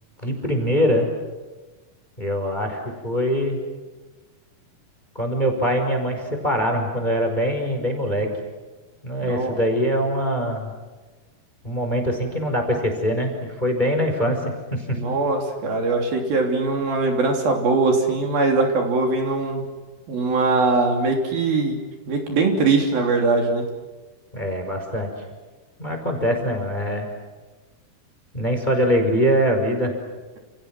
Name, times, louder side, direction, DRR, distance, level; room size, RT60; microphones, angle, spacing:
voice 1, 0.2-1.1 2.2-3.6 5.1-8.3 9.0-10.7 11.6-14.4 14.7-15.0 24.3-25.1 25.8-27.1 28.3-29.9, equal, 10° left, 4 dB, 5.0 m, -23 dB
voice 2, 9.2-9.6 14.9-19.6 20.1-21.8 22.1-23.6, right 3 dB, 60° right, 2 dB, 4.9 m, -21 dB
29.5 x 29.5 x 6.1 m, 1.2 s
omnidirectional pair, 4.8 m